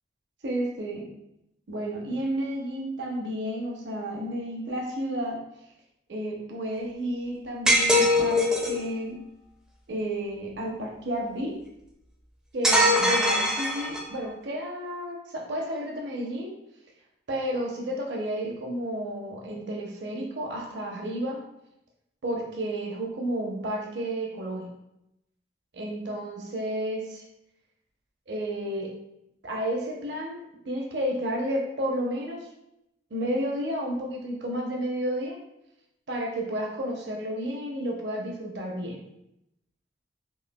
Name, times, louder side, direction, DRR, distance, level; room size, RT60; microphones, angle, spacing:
voice 1, 0.4-1.1 1.7-5.4 6.1-9.2 9.9-11.5 12.5-16.5 17.3-21.4 22.2-24.7 25.7-27.2 28.3-28.9 29.4-32.4 33.1-35.4 36.1-39.0, right 1 dB, 75° right, 0 dB, 0.7 m, -31 dB
sound 1, 7.7-8.8 12.6-14.2, left 1 dB, 5° right, 0.4 m, -22 dB
5.4 x 2.6 x 2.2 m, 0.85 s
head